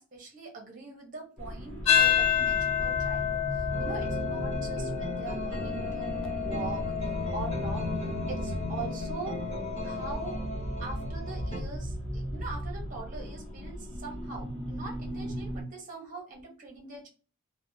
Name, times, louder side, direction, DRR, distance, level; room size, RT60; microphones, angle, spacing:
voice 1, 0.0-6.9 7.3-7.8 8.3-9.4 9.8-10.4 10.8-17.1, right 4 dB, 35° right, 0 dB, 0.8 m, -42 dB
sound 1, 1.4-15.6, left 1 dB, 5° left, 1.4 m, -36 dB
sound 2, 1.9-10.4, left 10 dB, 85° left, 0.6 m, -30 dB
sound 3, 3.7-11.6, right 2 dB, 30° left, 1.2 m, -37 dB
2.7 x 2.2 x 2.6 m, 0.37 s
head